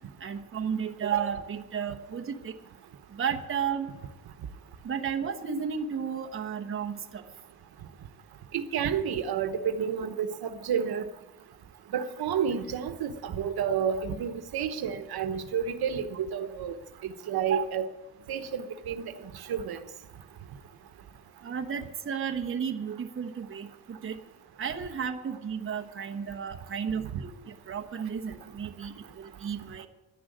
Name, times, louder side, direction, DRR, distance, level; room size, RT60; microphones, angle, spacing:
voice 1, 0.2-2.6 3.1-3.9 4.8-7.2 17.4-17.6 21.4-24.2 24.6-29.9, right 7 dB, 35° right, 1.1 m, -33 dB
voice 2, 8.5-11.0 11.9-16.7 17.3-17.9 18.3-19.1 19.5-19.8, right 7 dB, 80° right, 1.1 m, -30 dB
11.0 x 10.5 x 9.3 m
wide cardioid pair, 155°, 37 cm